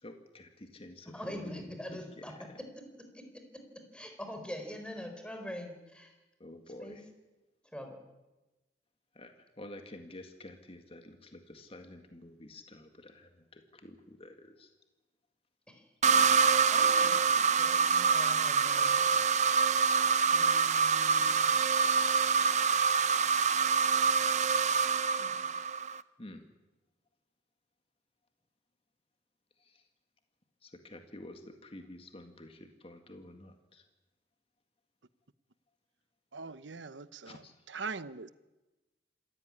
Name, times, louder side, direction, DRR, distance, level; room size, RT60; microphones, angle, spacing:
voice 1, 0.0-1.7 1.9-2.6 6.4-7.1 9.2-14.7 26.2-26.5 29.6-29.8 30.6-33.8 37.2-37.5, left 1 dB, 35° left, 6 dB, 2.0 m, -50 dB
voice 2, 1.1-2.7 3.1-3.2 3.9-6.1 6.8-7.0 7.7-8.0 15.7-16.2 16.7-19.1 20.3-21.5 25.2-25.5, left 1 dB, 5° left, 5 dB, 4.2 m, -44 dB
sound 1, 16.0-26.0, right 5 dB, 40° right, 0.7 m, -26 dB
voice 3, 36.3-37.4 37.7-38.3, right 4 dB, 90° right, 14 dB, 1.0 m, -41 dB
26.5 x 15.0 x 9.9 m, 1.1 s
head